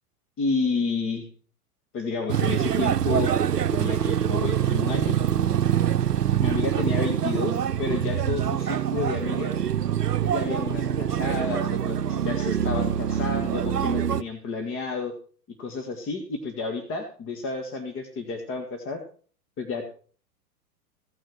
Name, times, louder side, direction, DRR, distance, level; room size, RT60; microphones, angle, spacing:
voice 1, 0.4-1.3 1.9-3.3 3.7-5.3 6.3-9.6 10.2-15.1 15.6-19.0 19.6-19.9, left 4 dB, 25° left, 5 dB, 1.9 m, -31 dB
sound 1, 2.3-14.2, right 9 dB, 85° right, 0.7 m, -25 dB
16.5 x 6.3 x 6.6 m, 0.42 s
figure-of-eight pair, 105°, 46 cm